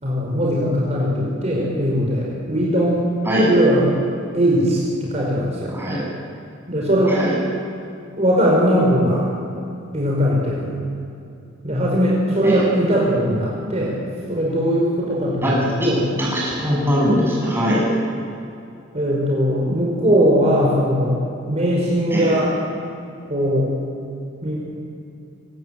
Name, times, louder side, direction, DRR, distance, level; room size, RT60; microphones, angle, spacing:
voice 1, 0.0-3.0 3.5-3.9 4.3-5.8 6.7-7.2 8.2-9.2 9.9-10.7 11.6-13.9 14.3-16.1 18.9-21.2 21.5-22.5 23.3-23.7 24.4-24.6, equal, 35° right, -4 dB, 5.5 m, -19 dB
voice 2, 5.7-6.0 7.1-7.3 12.4-12.7 15.4-15.5 15.8-15.9 16.2-17.9 22.1-22.4, equal, 10° right, -5 dB, 8.0 m, -21 dB
25.0 x 18.5 x 9.1 m, 2.6 s
head